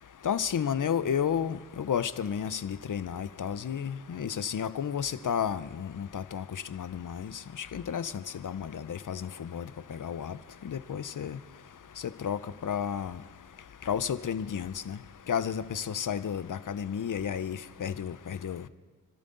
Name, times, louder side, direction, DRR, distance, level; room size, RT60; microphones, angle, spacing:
voice 1, 0.2-6.4 6.7-7.3 7.6-9.6 9.9-10.3 10.6-11.4 12.2-13.2 13.9-15.0 15.3-18.6, left 8 dB, 65° left, 14 dB, 0.8 m, -32 dB
29.5 x 12.0 x 4.0 m, 1.4 s
cardioid pair, 55°, 34 cm